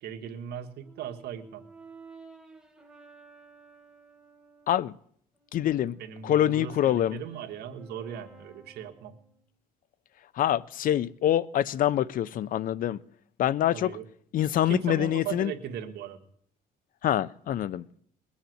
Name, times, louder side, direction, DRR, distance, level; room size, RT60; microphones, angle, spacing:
voice 1, 0.0-1.6 6.0-9.1 13.7-14.0 14.7-16.2, right 8 dB, 70° right, 1.8 m, -38 dB
Brass instrument, 0.8-4.8 5.3-9.4, right 3 dB, 5° right, 1.8 m, -54 dB
voice 2, 5.5-7.2 10.4-13.0 13.4-13.9 14.3-15.5 17.0-17.9, left 11 dB, 55° left, 0.6 m, -25 dB
21.5 x 7.2 x 9.3 m
cardioid pair, 110°, 17 cm